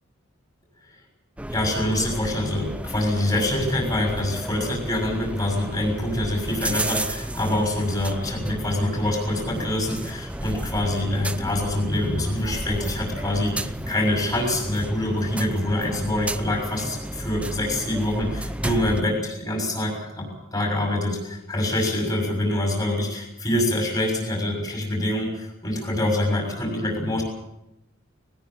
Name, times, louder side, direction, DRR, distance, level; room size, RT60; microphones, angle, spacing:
sound 1, 1.4-19.0, right 1 dB, 5° right, 0.7 m, -32 dB
voice 1, 1.5-27.2, left 1 dB, 25° left, -1 dB, 6.3 m, -25 dB
21.0 x 20.0 x 7.4 m, 0.87 s
head